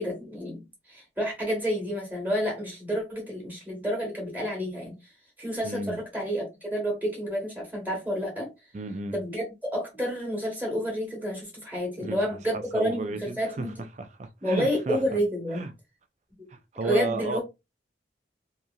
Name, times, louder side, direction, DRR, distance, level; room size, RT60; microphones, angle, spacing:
voice 1, 0.0-5.0 5.4-8.5 9.1-13.8 14.4-15.6 16.8-17.4, equal, 10° right, 1.2 m, -29 dB
voice 2, 5.6-6.0 8.7-9.2 12.0-13.7 14.0-15.0 15.5-15.7 16.5-17.4, right 2 dB, 40° right, 0.4 m, -33 dB
2.9 x 2.5 x 2.3 m
head